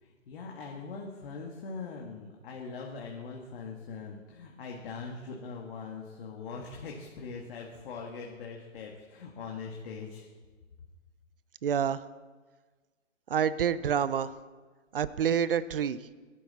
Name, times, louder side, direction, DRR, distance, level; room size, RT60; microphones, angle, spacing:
voice 1, 0.0-10.3, left 4 dB, 45° left, 0 dB, 1.7 m, -41 dB
voice 2, 11.6-12.0 13.3-14.3 14.9-16.0, right 8 dB, 45° right, 17 dB, 0.6 m, -27 dB
20.5 x 11.5 x 4.2 m, 1.4 s
hypercardioid pair, 150°, 39 cm